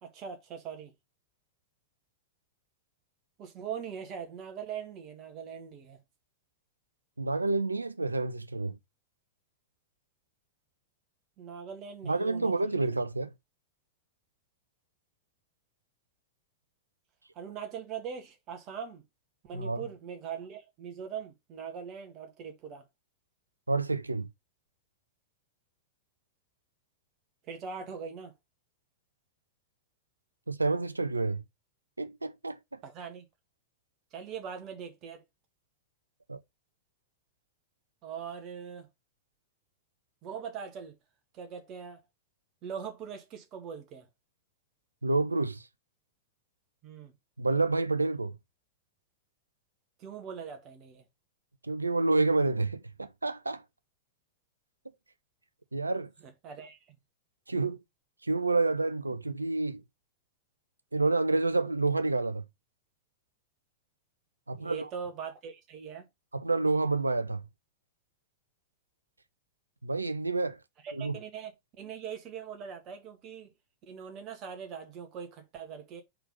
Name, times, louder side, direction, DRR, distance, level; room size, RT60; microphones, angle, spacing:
voice 1, 0.0-0.9 3.4-6.0 11.4-12.8 17.4-19.0 19.4-22.9 27.5-28.3 32.8-33.2 34.1-35.2 38.0-38.9 40.2-41.0 41.3-42.0 42.6-44.1 46.8-47.1 50.0-51.0 56.2-57.0 64.5-66.1 70.8-71.5 71.8-73.5 73.9-76.0, right 7 dB, 35° right, 1.8 m, -41 dB
voice 2, 7.2-8.8 12.0-13.3 19.5-19.8 23.7-24.3 30.5-31.4 32.0-32.8 36.3-36.4 45.0-45.6 47.4-48.4 51.7-53.6 55.7-56.1 57.5-57.8 58.2-59.8 60.9-62.4 64.5-64.9 66.3-67.4 69.8-70.6 70.9-71.1, right 3 dB, 80° right, 0.6 m, -29 dB
4.5 x 3.9 x 5.4 m
figure-of-eight pair, 90°, 0 cm